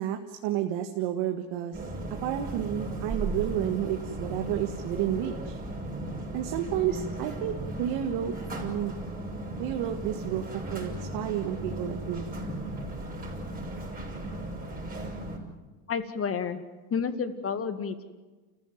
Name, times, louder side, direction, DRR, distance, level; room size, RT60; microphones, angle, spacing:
voice 1, 0.0-1.8 2.2-5.6 6.3-8.3 8.6-8.9 9.6-10.4 10.7-12.3, right 11 dB, 65° right, 5 dB, 1.8 m, -31 dB
sound 1, 1.7-15.4, right 1 dB, 20° right, 6.2 m, -36 dB
voice 2, 15.9-16.6 16.9-18.0, left 6 dB, 30° left, 10 dB, 2.0 m, -30 dB
29.0 x 15.0 x 9.2 m, 1.3 s
supercardioid pair, 110°, 43 cm